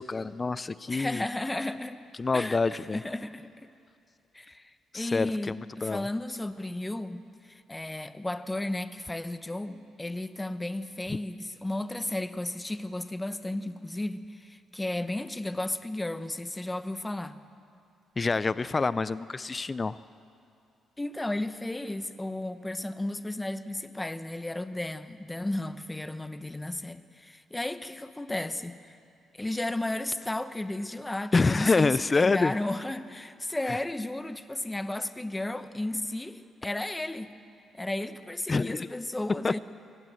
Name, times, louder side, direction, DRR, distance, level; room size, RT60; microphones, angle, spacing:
voice 1, 0.0-1.2 2.2-3.0 4.9-6.1 11.1-11.2 18.2-20.0 31.3-32.5 33.7-33.8 38.5-38.9 39.4-39.6, left 3 dB, 30° left, 17 dB, 0.5 m, -27 dB
voice 2, 0.9-2.0 2.3-3.7 4.3-17.4 21.0-29.0 29.3-37.3 37.7-39.6, left 1 dB, 15° left, 11 dB, 1.0 m, -34 dB
25.0 x 17.5 x 7.7 m, 2.5 s
cardioid pair, 90°, 0 cm